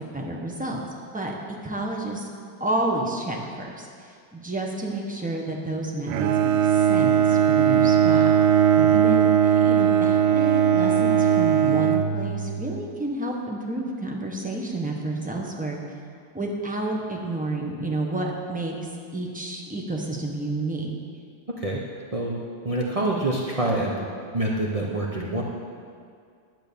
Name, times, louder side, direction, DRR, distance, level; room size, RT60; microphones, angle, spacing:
voice 1, 0.1-0.8 1.1-1.3 1.6-2.3 2.6-8.3 8.9-9.3 9.6-15.8 16.3-18.8 19.1-20.9, right 2 dB, 5° right, -1 dB, 0.8 m, -30 dB
Bowed string instrument, 6.1-12.8, right 9 dB, 85° right, 1.5 m, -19 dB
voice 2, 22.6-24.0 24.3-25.4, right 2 dB, 45° right, -3 dB, 0.4 m, -26 dB
10.5 x 8.9 x 7.0 m, 2.2 s
omnidirectional pair, 2.3 m